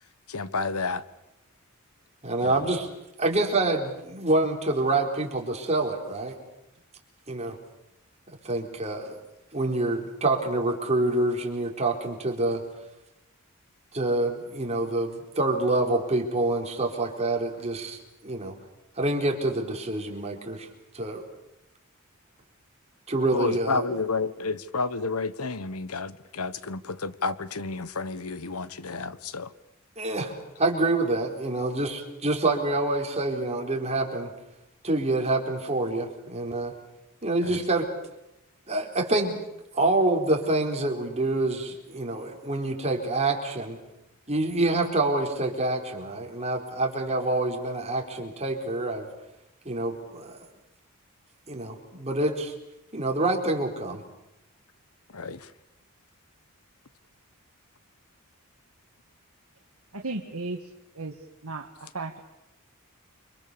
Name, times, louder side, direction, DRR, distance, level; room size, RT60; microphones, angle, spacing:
voice 1, 0.3-1.0 2.4-2.7 23.3-29.5 37.4-37.6 55.1-55.5, left 4 dB, 80° left, 1.2 m, -31 dB
voice 2, 2.2-2.9 3.2-6.4 7.3-7.6 8.4-9.2 9.5-12.6 13.9-18.5 19.0-20.7 20.9-21.2 23.1-23.8 30.0-30.3 30.6-34.3 34.8-36.7 37.2-37.9 38.7-39.4 39.7-43.8 44.3-49.1 49.6-50.4 51.5-52.5 52.9-54.0, right 2 dB, 30° right, 4.3 m, -26 dB
voice 3, 59.9-61.2 61.4-62.2, right 3 dB, 80° right, 1.8 m, -35 dB
29.0 x 24.5 x 6.9 m
head